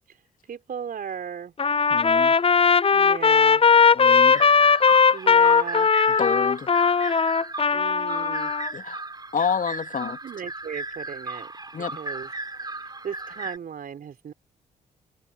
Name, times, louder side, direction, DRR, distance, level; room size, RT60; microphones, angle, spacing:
voice 1, 0.5-1.5 2.9-3.6 5.1-6.0 7.7-8.5 10.0-11.5 11.8-12.3 13.0-14.3, right 7 dB, 55° right, 3.9 m, -36 dB
Trumpet, 1.6-8.7, left 5 dB, 30° left, 0.7 m, -18 dB
voice 2, 1.9-2.3 3.9-4.4 6.1-6.7 8.7-9.0 9.3-10.2 11.7-12.0, left 6 dB, 50° left, 2.7 m, -28 dB
sound 1, 4.3-13.6, right 2 dB, 25° right, 3.6 m, -36 dB
hypercardioid pair, 45°, 18 cm